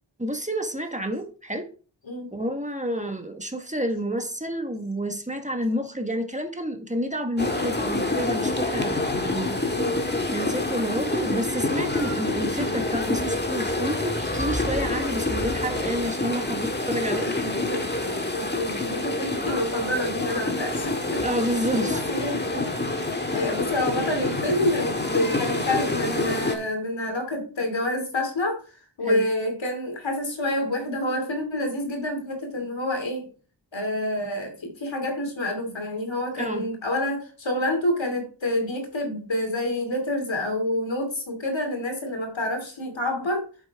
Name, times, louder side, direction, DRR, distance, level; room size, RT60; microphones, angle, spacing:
voice 1, 0.2-1.7 2.3-9.6 10.3-17.3 21.2-22.1 29.0-29.2 36.4-36.7, equal, 15° right, 5 dB, 1.4 m, -29 dB
sound 1, 7.4-26.6, left 2 dB, 25° left, 1.8 m, -27 dB
voice 2, 17.2-21.2 21.7-28.6 29.0-33.3 33.7-43.5, left 1 dB, 80° left, 4 dB, 2.7 m, -28 dB
9.2 x 7.2 x 3.5 m, 0.38 s
wide cardioid pair, 65°, 45 cm